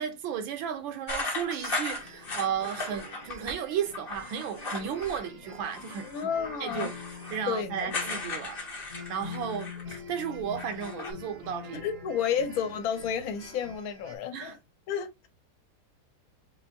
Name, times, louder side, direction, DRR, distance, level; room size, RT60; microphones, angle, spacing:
voice 1, 0.0-6.3 6.6-6.9 7.3-11.8 14.3-14.6, right 8 dB, 70° right, 1.4 m, -34 dB
sound 1, 1.1-3.6 3.9-5.3 5.6-10.1 10.4-11.1, left 3 dB, 45° left, 0.8 m, -37 dB
sound 2, 1.5-14.2, right 5 dB, 50° right, 0.9 m, -51 dB
sound 3, 2.0-13.8, left 7 dB, 85° left, 2.3 m, -46 dB
voice 2, 6.0-6.9 7.5-7.9 11.7-14.6 14.9-15.3, left 7 dB, 65° left, 0.9 m, -31 dB
7.2 x 2.6 x 2.6 m
omnidirectional pair, 2.3 m